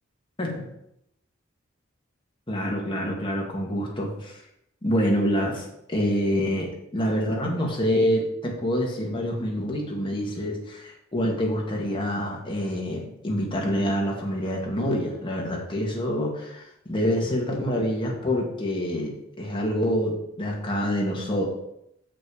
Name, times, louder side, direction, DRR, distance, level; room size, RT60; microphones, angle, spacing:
voice 1, 2.5-4.4 4.8-21.4, equal, 25° left, -1 dB, 1.7 m, -26 dB
6.7 x 6.1 x 4.9 m, 0.79 s
head